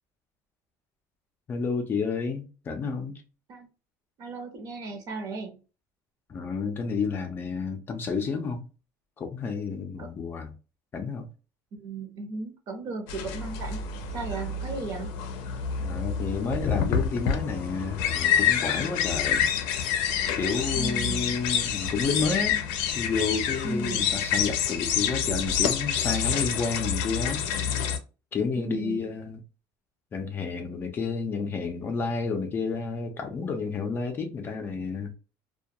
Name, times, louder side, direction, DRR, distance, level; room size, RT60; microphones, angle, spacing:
voice 1, 1.5-3.2 6.3-8.7 9.2-10.5 10.9-11.3 15.8-19.5 20.3-22.6 22.9-27.8 28.3-29.4 30.1-35.1, left 4 dB, 25° left, 0.5 m, -30 dB
voice 2, 4.2-5.6 10.0-10.1 11.7-13.8 14.1-15.1 20.7-21.3 23.6-24.1 28.6-29.0, right 3 dB, 50° right, 0.8 m, -35 dB
sound 1, 13.1-28.0, left 8 dB, 85° left, 0.5 m, -28 dB
2.3 x 2.2 x 2.7 m
cardioid pair, 150°, 8 cm